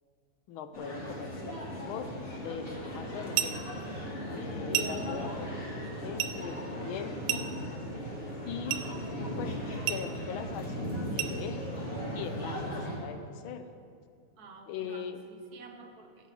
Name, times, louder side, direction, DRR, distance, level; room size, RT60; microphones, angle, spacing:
voice 1, 0.5-3.6 4.3-7.5 8.4-8.9 9.4-9.6 9.9-10.8 11.1-11.6 12.1-13.7 14.7-15.2, left 7 dB, 85° left, 9 dB, 1.5 m, -41 dB
sound 1, 0.7-13.0, equal, 45° left, 2.0 m, -37 dB
sound 2, 3.3-3.7 4.7-5.1 6.2-6.4 7.3-7.7 8.7-8.9 9.9-10.1 11.2-11.4, right 11 dB, 80° right, 1.4 m, -32 dB
voice 2, 14.4-16.3, right 4 dB, 60° right, 5 dB, 1.2 m, -51 dB
16.5 x 8.1 x 3.2 m, 2.3 s
omnidirectional pair, 2.2 m